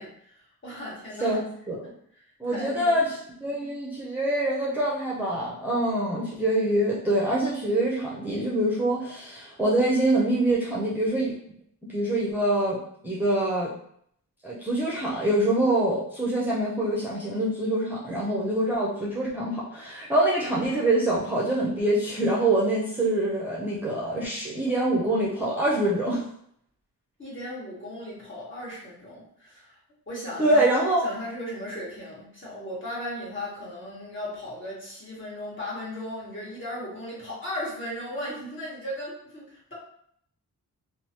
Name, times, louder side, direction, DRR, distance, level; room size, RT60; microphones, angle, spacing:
voice 1, 0.0-1.4 2.5-3.0 27.2-29.8 30.1-30.7 31.0-39.7, left 1 dB, 35° left, -6 dB, 1.5 m, -36 dB
voice 2, 1.2-1.8 2.4-3.2 3.4-11.3 11.9-12.8 13.0-13.7 14.4-26.3 30.4-31.0, right 1 dB, 5° right, -6 dB, 0.7 m, -25 dB
3.0 x 2.0 x 2.8 m, 0.67 s
cardioid pair, 55°, 36 cm